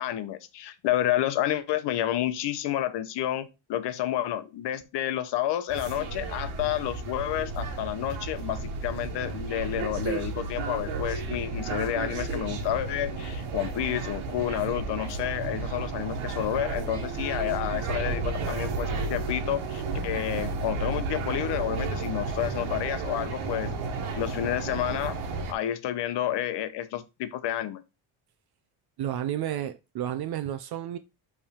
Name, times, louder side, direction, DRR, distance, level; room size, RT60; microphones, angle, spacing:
voice 1, 0.0-23.7 24.2-25.2 25.5-27.8, left 12 dB, 60° left, 0.9 m, -30 dB
sound 1, 5.7-25.5, right 4 dB, 85° right, 1.4 m, -32 dB
voice 2, 29.0-31.0, right 11 dB, 55° right, 0.6 m, -31 dB
5.4 x 3.5 x 5.0 m
cardioid pair, 150°, 47 cm